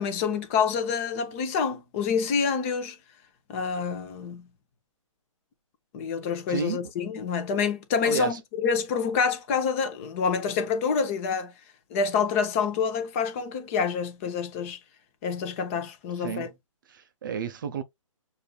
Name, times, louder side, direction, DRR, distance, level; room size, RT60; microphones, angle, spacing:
voice 1, 0.0-3.0 3.5-4.5 5.9-11.5 11.9-14.8 15.2-16.5, left 6 dB, 25° left, 0.8 m, -27 dB
voice 2, 6.5-6.8 8.0-8.4 16.2-16.5 16.9-17.8, right 7 dB, 40° right, 0.5 m, -32 dB
6.4 x 2.7 x 2.3 m
figure-of-eight pair, 145°, 17 cm